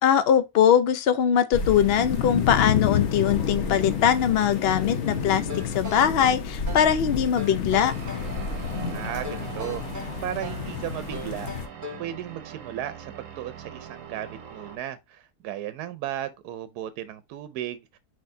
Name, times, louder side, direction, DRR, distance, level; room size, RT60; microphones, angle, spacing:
voice 1, 0.0-7.9, left 9 dB, 70° left, 0.5 m, -21 dB
sound 1, 1.5-11.7, left 7 dB, 55° left, 1.0 m, -30 dB
sound 2, 5.5-7.0 7.4-8.3 9.2-10.7 11.1-12.1, left 1 dB, 25° right, 0.4 m, -39 dB
sound 3, 7.9-14.8, right 7 dB, 60° right, 1.1 m, -41 dB
voice 2, 8.9-9.8 10.2-11.5 12.0-18.0, right 11 dB, 85° right, 1.1 m, -35 dB
4.6 x 4.3 x 2.6 m
omnidirectional pair, 1.7 m